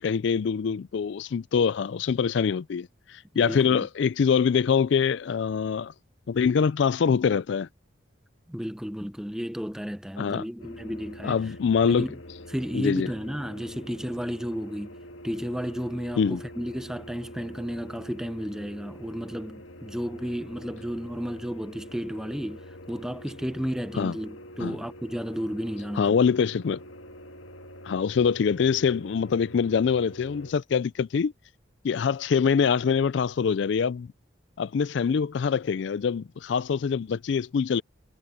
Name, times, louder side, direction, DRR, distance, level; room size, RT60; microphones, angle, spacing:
voice 1, 0.0-5.9 6.3-7.7 10.2-10.4 11.2-12.1 12.7-13.1 16.2-16.4 24.0-24.1 24.6-24.8 26.0-26.8 27.8-31.3 31.8-34.1 34.6-37.8, left 6 dB, 65° left, 0.4 m, -24 dB
voice 2, 3.3-3.9 8.5-11.4 11.8-12.2 12.5-14.9 15.2-22.6 22.9-26.2, equal, 5° right, 0.7 m, -33 dB
sound 1, 10.6-30.5, equal, 85° left, 1.6 m, -45 dB
head